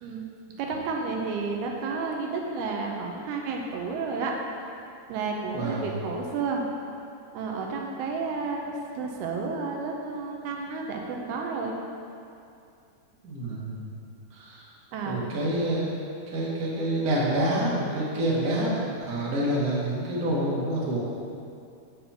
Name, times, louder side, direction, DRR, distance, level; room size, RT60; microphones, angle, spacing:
voice 1, 0.6-4.3 5.1-6.6 7.3-11.8 14.9-15.2, right 4 dB, 80° right, 0 dB, 2.6 m, -31 dB
voice 2, 5.5-5.8 13.2-13.8 14.3-14.7 15.0-16.0 16.3-21.1, right 1 dB, 55° right, -7 dB, 0.9 m, -27 dB
8.6 x 7.1 x 4.3 m, 2.5 s
omnidirectional pair, 4.8 m